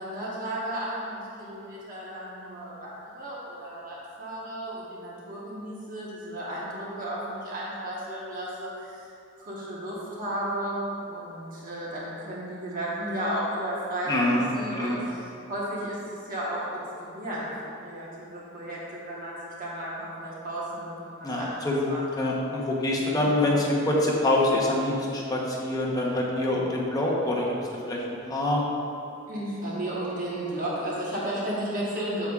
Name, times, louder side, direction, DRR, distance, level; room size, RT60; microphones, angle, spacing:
voice 1, 0.0-9.0 9.4-22.0 22.9-23.2 29.3-32.3, right 1 dB, 45° right, -6 dB, 1.2 m, -34 dB
voice 2, 14.1-15.0 21.2-27.5 27.8-28.6, left 1 dB, 20° left, -4 dB, 0.9 m, -25 dB
8.6 x 7.2 x 2.4 m, 2.7 s
head